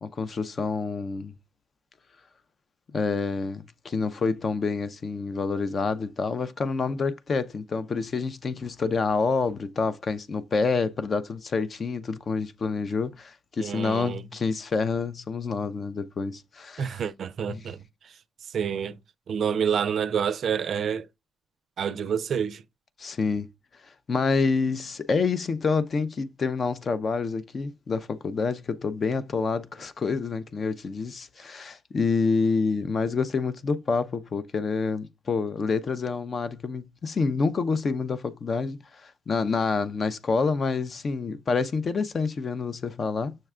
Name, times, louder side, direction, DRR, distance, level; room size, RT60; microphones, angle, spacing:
voice 1, 0.0-1.3 2.9-17.0 17.5-17.7 23.0-23.5 24.1-43.4, left 4 dB, 40° left, 0.5 m, -27 dB
voice 2, 13.6-14.2 16.8-17.8 18.5-18.9 19.3-21.0 21.8-22.6, right 7 dB, 60° right, 0.4 m, -28 dB
6.4 x 2.2 x 3.6 m
cardioid pair, 90°, 0 cm